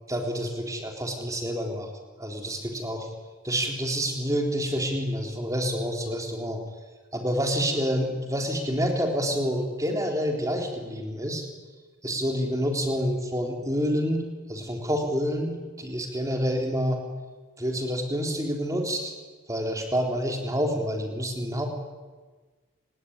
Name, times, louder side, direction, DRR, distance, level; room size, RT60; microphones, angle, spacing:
voice 1, 0.1-1.9 2.2-3.1 3.4-6.6 7.1-11.5 12.0-17.0 17.6-19.1 19.5-21.7, equal, 15° right, 3 dB, 3.8 m, -28 dB
29.5 x 19.0 x 9.7 m, 1.4 s
head